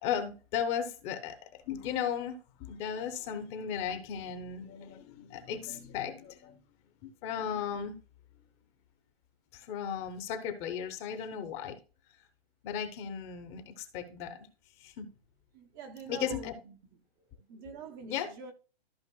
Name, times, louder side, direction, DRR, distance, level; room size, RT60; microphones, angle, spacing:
voice 1, 0.0-6.6 7.0-8.0 9.5-11.8 12.6-14.4 14.8-15.1 16.1-16.5 18.1-18.3, left 8 dB, 20° left, 0.8 m, -36 dB
voice 2, 15.5-17.0 17.3-18.5, right 4 dB, 20° right, 0.6 m, -46 dB
14.0 x 5.1 x 2.3 m
hypercardioid pair, 150°, 30 cm